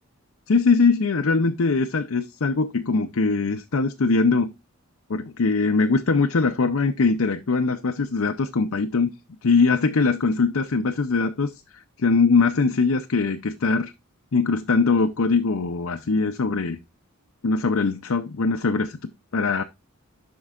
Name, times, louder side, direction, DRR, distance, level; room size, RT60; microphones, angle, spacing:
voice 1, 0.5-4.5 5.1-9.1 9.4-11.5 12.0-13.9 14.3-16.8 17.4-19.0 19.3-19.6, left 4 dB, 75° left, 0.6 m, -21 dB
12.0 x 4.6 x 2.4 m
head